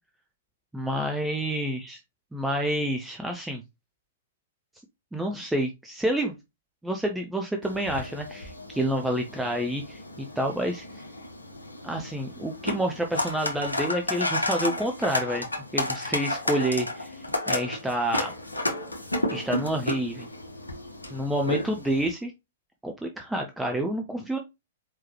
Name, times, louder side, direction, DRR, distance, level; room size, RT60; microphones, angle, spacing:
voice 1, 0.7-2.0 2.3-3.6 5.1-6.4 6.8-10.0 10.4-10.8 11.8-15.5 15.7-17.2 17.5-18.3 19.3-20.3 21.1-22.3 22.8-24.4, right 1 dB, 5° right, 3 dB, 0.7 m, -28 dB
sound 1, 7.6-22.1, left 1 dB, 80° left, 1.1 m, -32 dB
4.6 x 3.8 x 3.0 m, 0.22 s
figure-of-eight pair, 105°, 0 cm